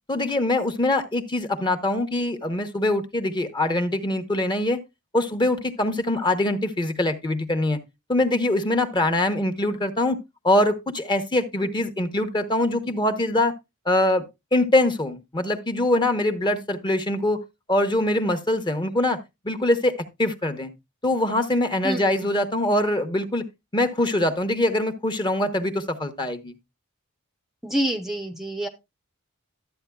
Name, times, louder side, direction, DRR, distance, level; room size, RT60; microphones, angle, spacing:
voice 1, 0.1-4.8 5.1-7.8 8.1-10.2 10.4-13.5 13.8-14.2 14.5-17.4 17.7-19.2 19.4-20.7 21.0-23.4 23.7-26.5, left 1 dB, 20° left, 1.0 m, -23 dB
voice 2, 21.8-22.3 27.6-28.7, right 1 dB, ahead, 0.7 m, -27 dB
12.5 x 8.4 x 2.3 m
head